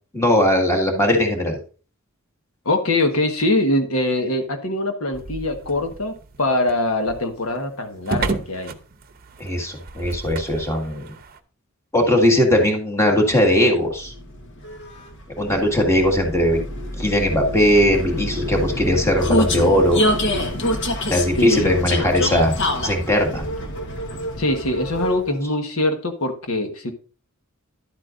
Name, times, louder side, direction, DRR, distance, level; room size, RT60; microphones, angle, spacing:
voice 1, 0.1-1.6 9.4-11.1 11.9-14.1 15.4-16.6 17.0-20.0 21.1-22.5 22.8-23.4, left 1 dB, 15° left, 2 dB, 1.7 m, -19 dB
voice 2, 2.6-6.1 6.4-8.7 21.4-21.8 24.4-26.9, left 2 dB, 90° left, 5 dB, 1.3 m, -23 dB
sound 1, 5.1-11.4, right 3 dB, 45° right, 0.7 m, -33 dB
Vehicle, 13.6-25.4, left 1 dB, 60° left, 1.3 m, -26 dB
11.0 x 8.1 x 2.5 m, 0.39 s
head